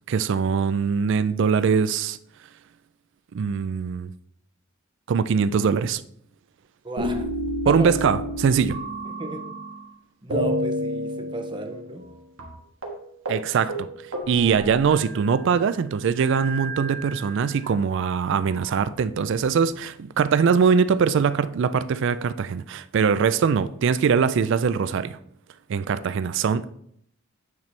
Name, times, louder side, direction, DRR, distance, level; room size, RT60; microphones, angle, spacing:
voice 1, 0.1-2.2 3.3-4.1 5.1-6.0 7.7-8.8 13.3-13.9 14.3-25.2 25.7-26.7, right 6 dB, 60° right, 0.3 m, -22 dB
voice 2, 6.8-7.3 7.6-8.0 9.0-9.5 10.2-12.1, right 1 dB, 20° right, 0.7 m, -34 dB
sound 1, 7.0-9.9 10.3-12.1 12.4-12.5 12.8-13.0 13.3-13.4 13.7-15.4 16.2-17.7 18.5-19.4, equal, 85° right, 1.4 m, -31 dB
8.4 x 4.4 x 3.2 m
head